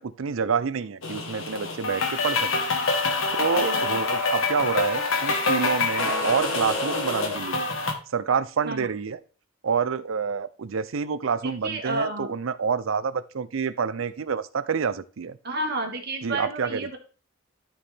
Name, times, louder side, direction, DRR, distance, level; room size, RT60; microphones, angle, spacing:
voice 1, 0.0-2.6 3.4-7.7 8.1-9.2 9.6-15.4 16.2-16.9, right 6 dB, 75° right, 15 dB, 0.5 m, -28 dB
sound 1, 1.0-7.9, left 3 dB, 80° left, 1.5 m, -26 dB
voice 2, 3.6-4.0 8.7-8.9 11.4-12.3 15.4-17.0, right 2 dB, 50° right, 3 dB, 1.7 m, -30 dB
13.0 x 4.3 x 3.5 m, 0.37 s
head